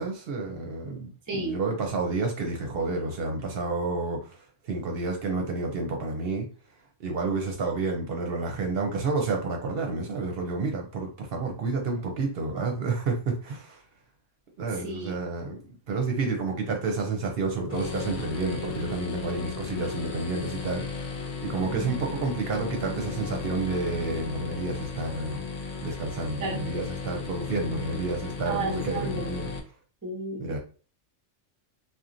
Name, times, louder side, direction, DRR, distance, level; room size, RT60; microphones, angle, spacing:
voice 1, 0.0-6.5 7.0-13.8 14.6-21.2 21.4-25.5 25.8-29.5 30.4-30.6, right 3 dB, 60° right, 0.8 m, -30 dB
sound 1, 17.7-29.6, left 4 dB, 65° left, 0.4 m, -35 dB
voice 2, 28.5-29.3 30.0-30.5, right 2 dB, 25° right, 0.4 m, -33 dB
2.9 x 2.2 x 2.5 m
omnidirectional pair, 1.3 m